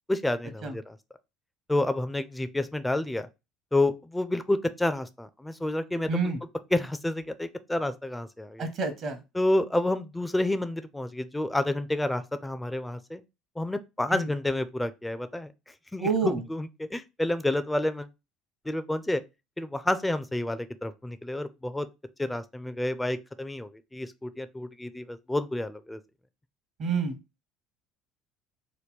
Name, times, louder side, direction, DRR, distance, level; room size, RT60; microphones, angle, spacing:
voice 1, 0.1-1.0 1.7-3.3 3.7-6.3 6.7-8.7 9.3-13.2 13.6-15.5 15.9-18.1 18.7-19.2 19.6-21.9 22.2-26.0, left 1 dB, 10° left, 0.4 m, -29 dB
voice 2, 6.1-6.4 8.6-9.2 14.1-14.3 16.0-16.4 26.8-27.2, right 4 dB, 55° right, 0.8 m, -28 dB
2.9 x 2.2 x 3.5 m
hypercardioid pair, 75°, 0 cm